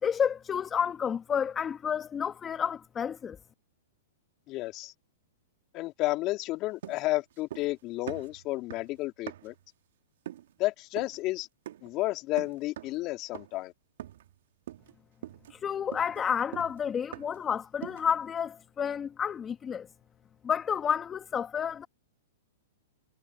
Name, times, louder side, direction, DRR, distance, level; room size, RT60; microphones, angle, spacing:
voice 1, 0.0-3.4 15.5-19.9 20.4-21.9, left 7 dB, 20° left, 1.8 m, -30 dB
voice 2, 4.5-4.9 5.7-9.5 10.6-11.5 11.8-13.7, left 19 dB, 40° left, 3.3 m, -32 dB
sound 1, 6.8-7.8 8.1-9.7 10.3-10.6 11.0-11.2 11.7-12.0 12.4-13.0 13.3-13.7 14.0-14.4 14.7-15.0 15.2-17.5 17.8-18.2, right 12 dB, 65° right, 2.3 m, -44 dB
hypercardioid pair, 120°, 0 cm